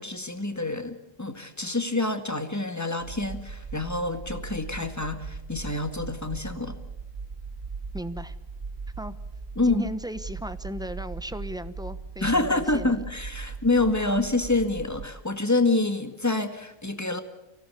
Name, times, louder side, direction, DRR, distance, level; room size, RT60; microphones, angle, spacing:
voice 1, 0.0-6.8 9.6-9.9 12.2-17.2, left 2 dB, 15° left, 8 dB, 1.8 m, -27 dB
sound 1, 3.0-15.1, right 4 dB, 40° right, 1.3 m, -39 dB
voice 2, 7.9-8.3 9.0-9.2 9.6-13.0, right 1 dB, 5° right, 12 dB, 0.9 m, -36 dB
25.0 x 17.0 x 8.3 m, 0.98 s
omnidirectional pair, 1.3 m